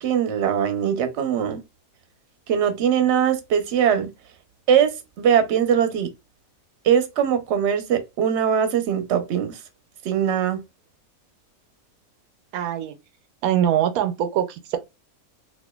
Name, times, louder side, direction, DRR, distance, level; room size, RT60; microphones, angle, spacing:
voice 1, 0.0-1.6 2.5-4.1 4.7-6.1 6.8-9.6 10.0-10.6, right 8 dB, 60° right, 0.9 m, -21 dB
voice 2, 12.5-13.0 13.4-14.8, right 10 dB, 85° right, 1.1 m, -23 dB
4.3 x 2.5 x 2.2 m
omnidirectional pair, 1.5 m